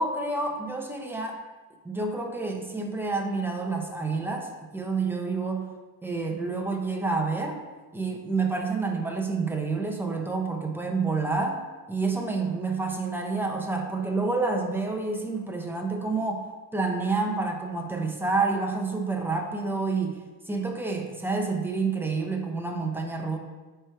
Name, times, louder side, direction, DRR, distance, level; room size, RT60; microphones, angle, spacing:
voice 1, 0.0-1.4 1.8-5.7 6.0-7.6 7.9-20.2 20.5-23.4, right 3 dB, 5° right, 2 dB, 0.9 m, -28 dB
9.4 x 3.4 x 4.5 m, 1.3 s
cardioid pair, 130°, 43 cm